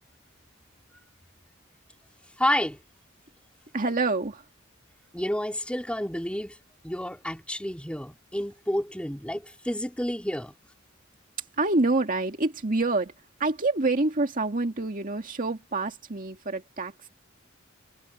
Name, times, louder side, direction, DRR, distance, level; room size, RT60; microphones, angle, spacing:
voice 1, 2.4-2.8 5.1-6.6 6.8-10.6, left 1 dB, 5° left, 4.0 m, -30 dB
voice 2, 3.7-4.5 11.6-13.1 13.4-17.1, right 2 dB, 45° right, 2.1 m, -27 dB
head